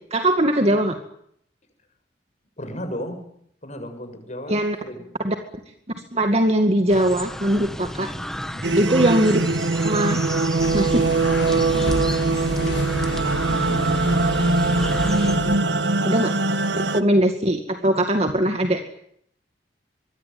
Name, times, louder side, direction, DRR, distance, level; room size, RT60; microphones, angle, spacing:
voice 1, 0.1-1.0 4.5-4.8 5.2-5.3 6.1-8.1 8.8-9.4 9.8-10.2 10.7-11.0 16.0-16.3 16.7-18.8, right 1 dB, 35° right, 5 dB, 2.2 m, -20 dB
voice 2, 2.6-3.2 3.6-5.1 8.5-8.8 13.4-16.2 16.6-17.0, equal, 40° left, 6 dB, 7.4 m, -37 dB
sound 1, 6.9-15.4, equal, 5° left, 1.7 m, -34 dB
sound 2, 8.6-17.0, right 3 dB, 80° right, 1.4 m, -22 dB
sound 3, 10.6-15.6, left 1 dB, 75° left, 2.2 m, -30 dB
25.0 x 22.5 x 9.5 m, 0.71 s
head